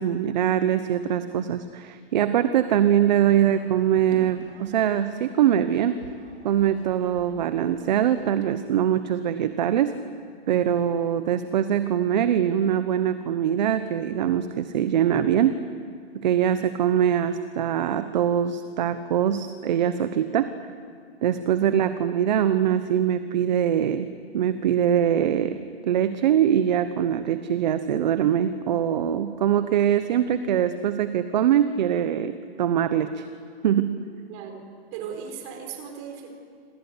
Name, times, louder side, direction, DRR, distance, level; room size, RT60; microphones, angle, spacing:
voice 1, 0.0-6.0 6.4-9.9 10.5-15.5 16.1-20.5 21.2-24.1 24.3-25.6 25.8-33.2 33.6-34.0, right 10 dB, 45° right, 11 dB, 1.1 m, -23 dB
sound 1, 3.5-8.6, right 4 dB, 85° right, 4.6 m, -48 dB
voice 2, 34.3-36.3, right 7 dB, 25° right, 5 dB, 4.2 m, -38 dB
27.0 x 27.0 x 8.1 m, 2.2 s
hypercardioid pair, 165°, 32 cm